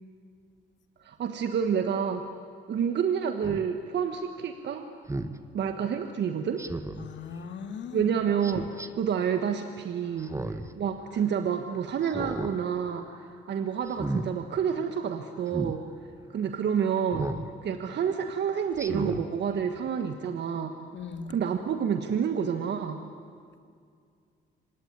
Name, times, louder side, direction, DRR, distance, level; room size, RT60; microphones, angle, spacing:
voice 1, 1.0-2.2 2.7-4.8 5.5-6.6 7.9-10.3 10.8-15.8 16.3-17.3 17.6-20.7 21.3-23.0, right 7 dB, 60° right, 7 dB, 1.4 m, -29 dB
Speech synthesizer, 3.4-3.6 5.1-5.4 6.6-7.1 8.4-8.9 10.2-10.7 11.1-11.2 12.0-12.5 12.9-13.2 13.9-14.3 15.5-15.8 17.1-17.5 17.9-18.1 18.7-19.2 19.7-19.8, right 2 dB, 15° right, 1.3 m, -33 dB
voice 2, 7.0-8.1 10.1-10.3 20.9-21.3, left 6 dB, 65° left, 8 dB, 2.0 m, -39 dB
25.5 x 19.5 x 9.8 m, 2.2 s
cardioid pair, 90°, 20 cm